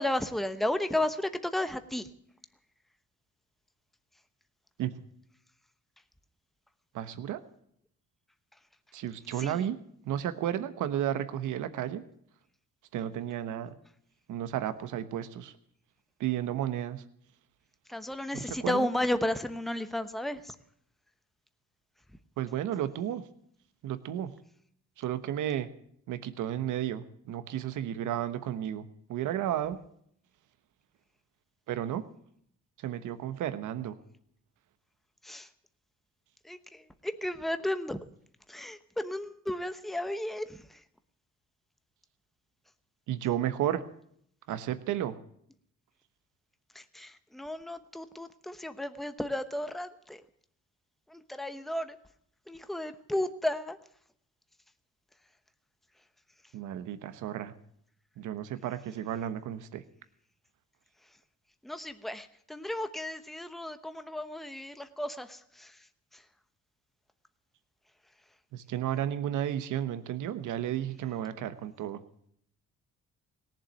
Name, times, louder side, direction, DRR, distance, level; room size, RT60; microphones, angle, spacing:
voice 1, 0.0-2.1 9.3-9.7 17.9-20.6 35.2-35.5 36.4-38.0 38.5-40.8 46.7-50.2 51.1-52.0 52.5-53.8 61.6-65.9 66.1-66.2, left 1 dB, ahead, 10 dB, 0.9 m, -33 dB
voice 2, 6.9-7.4 8.9-9.8 10.1-12.0 12.9-13.7 14.3-15.5 16.2-17.0 18.6-18.9 22.4-23.2 23.8-24.3 25.0-25.7 26.1-28.8 29.1-29.8 31.7-32.0 32.8-34.0 43.1-43.8 44.5-45.2 56.5-57.5 58.2-59.8 68.5-72.0, right 11 dB, 80° right, 12 dB, 1.2 m, -32 dB
18.0 x 7.4 x 9.2 m, 0.68 s
cardioid pair, 90°, 30 cm